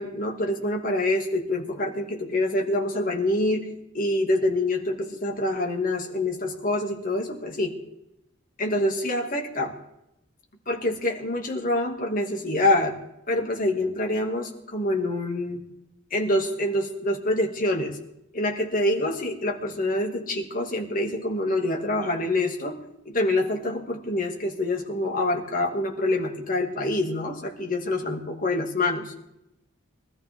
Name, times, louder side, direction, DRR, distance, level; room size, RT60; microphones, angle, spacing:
voice 1, 0.0-7.8 8.6-9.7 10.7-13.0 13.3-15.6 16.1-18.0 18.3-22.8 23.1-29.1, left 1 dB, 40° left, 1 dB, 2.3 m, -26 dB
22.5 x 13.5 x 3.7 m, 0.84 s
head